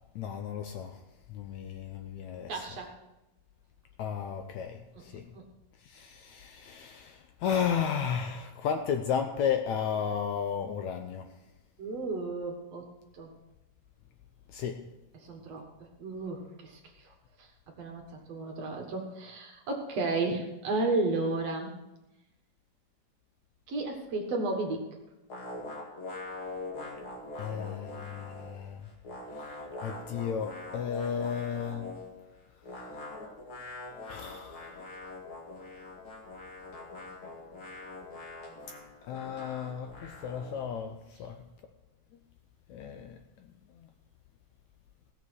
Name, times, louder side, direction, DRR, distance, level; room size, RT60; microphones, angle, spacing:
voice 1, 0.2-1.0 1.3-2.7 4.0-5.3 5.8-11.4 14.5-14.9 27.4-28.9 29.3-31.9 34.1-34.9 39.0-41.5 42.7-43.5 43.7-43.9, left 7 dB, 75° left, 1.8 m, -34 dB
voice 2, 2.5-2.9 5.3-5.4 11.8-12.9 13.1-13.3 15.2-15.6 16.0-16.8 17.8-21.7 23.7-24.9, right 3 dB, 55° right, 2.4 m, -33 dB
sound 1, 25.3-28.6 28.8-32.2 32.6-40.7, left 2 dB, 40° left, 2.8 m, -43 dB
16.5 x 7.0 x 6.3 m
omnidirectional pair, 3.8 m